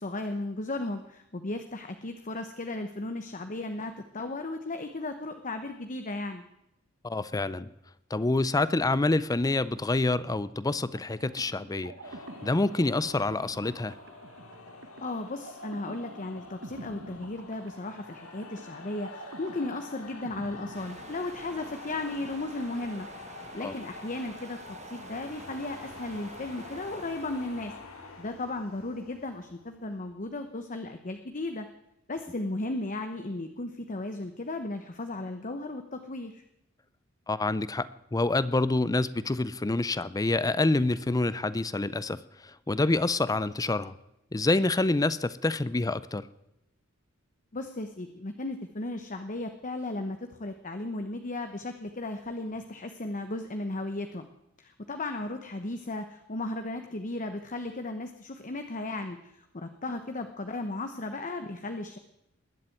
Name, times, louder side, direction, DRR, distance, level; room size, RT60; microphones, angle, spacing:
voice 1, 0.0-6.5 15.0-23.1 23.5-27.7 28.2-31.7 32.1-36.4 47.5-54.3 54.6-62.0, left 2 dB, 40° left, 7 dB, 1.0 m, -35 dB
voice 2, 7.0-7.7 8.1-11.9 12.4-13.9 23.6-23.7 37.3-42.2 42.7-43.9 44.3-46.3, left 2 dB, 15° left, 17 dB, 0.5 m, -27 dB
sound 1, 10.9-21.6, right 2 dB, 60° right, 1.2 m, -48 dB
sound 2, 12.0-30.6, left 3 dB, 75° left, 2.5 m, -47 dB
sound 3, 20.7-27.8, right 3 dB, 35° right, 1.1 m, -48 dB
20.5 x 7.6 x 9.1 m, 0.85 s
head